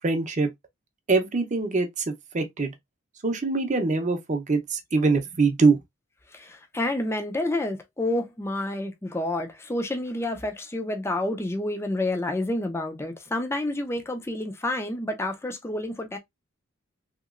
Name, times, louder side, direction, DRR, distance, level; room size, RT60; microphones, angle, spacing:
voice 1, 0.0-0.5 1.1-2.7 3.2-5.8, right 3 dB, 35° right, 0.6 m, -23 dB
voice 2, 6.3-16.2, left 1 dB, 10° left, 0.4 m, -29 dB
2.9 x 2.9 x 2.4 m
head